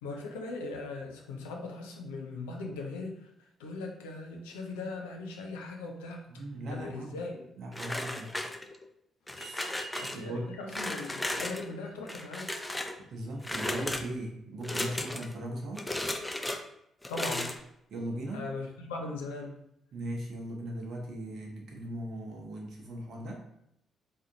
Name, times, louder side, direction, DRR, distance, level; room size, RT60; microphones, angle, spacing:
voice 1, 0.0-3.3 3.6-6.2 6.7-7.3 9.9-12.5 17.1-17.6 18.3-19.6, left 3 dB, 75° left, 1 dB, 0.6 m, -39 dB
voice 2, 6.3-7.2 7.6-8.4 9.3-9.7 10.1-10.5 13.1-15.9 17.9-18.5 19.9-23.4, right 1 dB, 55° right, 0 dB, 0.7 m, -38 dB
sound 1, 7.7-8.9 9.3-10.2 10.7-11.6 12.1-13.0 13.4-14.1 14.6-15.3 15.8-16.6 17.0-17.6, left 1 dB, 10° left, 0.5 m, -35 dB
sound 2, 9.3-14.3, right 3 dB, 55° left, 1.0 m, -53 dB
3.8 x 3.3 x 2.7 m, 0.77 s
figure-of-eight pair, 40°, 0 cm